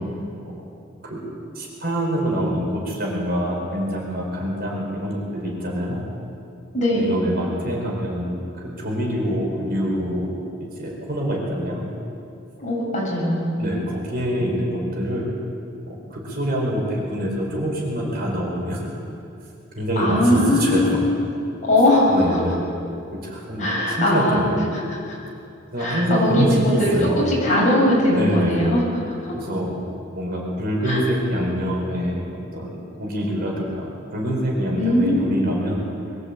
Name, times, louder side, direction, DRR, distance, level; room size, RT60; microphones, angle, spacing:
voice 1, 1.5-6.0 6.9-10.3 10.6-11.8 13.6-15.2 15.9-18.8 19.7-20.9 22.1-22.6 23.2-24.6 25.7-27.2 28.1-28.6 29.3-29.7 30.1-32.2 32.5-32.7 33.0-35.8, equal, 50° right, -2 dB, 5.0 m, -25 dB
voice 2, 6.7-7.2 12.6-13.6 20.0-21.2 21.6-22.4 23.6-24.4 24.7-24.8 25.8-28.8 30.8-31.0 34.8-35.3 35.6-35.8, left 1 dB, 40° left, -4 dB, 7.3 m, -20 dB
22.5 x 14.5 x 8.5 m, 2.6 s
head